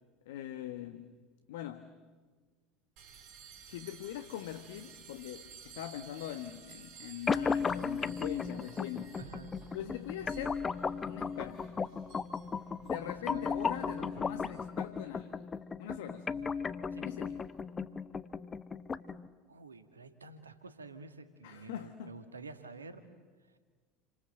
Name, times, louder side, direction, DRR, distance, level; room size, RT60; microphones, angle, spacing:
voice 1, 0.2-1.1 1.5-1.9 3.6-9.2 9.7-10.7 11.0-11.7 12.8-15.4 15.8-16.3 17.0-17.4 21.4-22.1, left 12 dB, 70° left, 1.3 m, -42 dB
sound 1, 3.0-14.6, right 6 dB, 55° right, 4.1 m, -54 dB
sound 2, 7.3-19.3, left 5 dB, 25° left, 1.0 m, -36 dB
voice 2, 9.2-9.5 12.9-13.5 16.3-16.5 16.9-17.1 19.5-23.2, right 3 dB, 85° right, 1.7 m, -50 dB
29.5 x 26.0 x 7.8 m
figure-of-eight pair, 70°, 0 cm